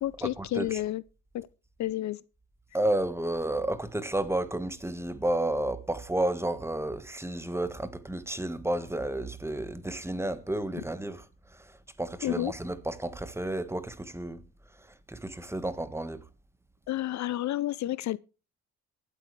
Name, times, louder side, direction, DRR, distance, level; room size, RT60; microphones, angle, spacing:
voice 1, 0.0-1.0 1.3-1.5 1.8-2.2 10.7-10.8 12.2-12.5 16.9-18.2, left 14 dB, 65° left, 0.6 m, -30 dB
voice 2, 2.7-11.2 12.0-14.4 15.1-16.2, right 1 dB, 10° right, 1.4 m, -31 dB
23.5 x 8.5 x 3.2 m
cardioid pair, 90°, 30 cm